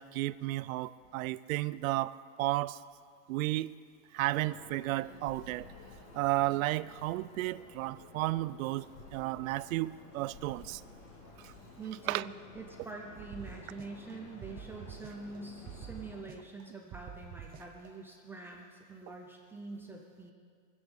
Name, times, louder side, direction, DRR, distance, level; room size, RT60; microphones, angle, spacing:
voice 1, 0.0-2.8 3.3-3.7 4.1-5.6 6.1-10.8 11.4-11.5 12.1-12.2, right 18 dB, 85° right, 16 dB, 0.6 m, -33 dB
sound 1, 4.2-16.2, left 3 dB, 35° left, 2.2 m, -53 dB
voice 2, 11.8-20.3, right 3 dB, 5° right, -1 dB, 0.4 m, -45 dB
sound 2, 13.2-14.1 14.4-15.4 15.7-16.6 16.9-17.9, right 8 dB, 20° right, 0.7 m, -47 dB
23.0 x 8.0 x 7.2 m, 2.2 s
supercardioid pair, 175°, 40 cm